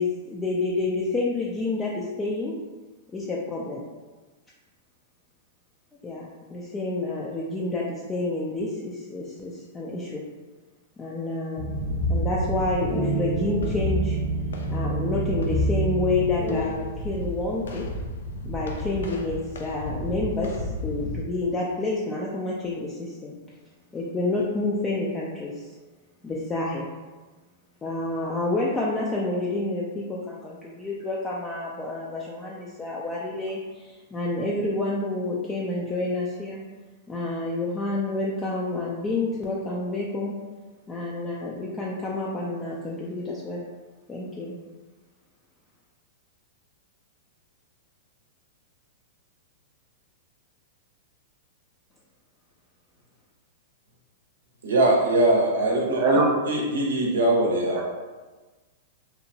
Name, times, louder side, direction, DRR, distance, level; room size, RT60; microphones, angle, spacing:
voice 1, 0.0-2.5 3.1-3.8 6.0-10.2 11.0-11.7 12.1-14.2 14.7-17.8 18.4-23.3 23.9-25.7 26.2-26.9 27.8-36.6 37.1-40.3 40.9-43.6 44.1-44.5, left 2 dB, 15° left, -5 dB, 0.4 m, -29 dB
sound 1, 11.6-16.7, right 2 dB, 30° left, 0.8 m, -28 dB
sound 2, 11.8-21.2, left 1 dB, 85° left, 0.4 m, -33 dB
voice 2, 54.6-56.2 56.4-57.8, right 1 dB, 90° right, -2 dB, 0.7 m, -22 dB
voice 3, 55.6-56.3 57.7-57.9, right 2 dB, 50° right, -1 dB, 0.7 m, -23 dB
2.8 x 2.1 x 2.7 m, 1.3 s
hypercardioid pair, 125°, 0 cm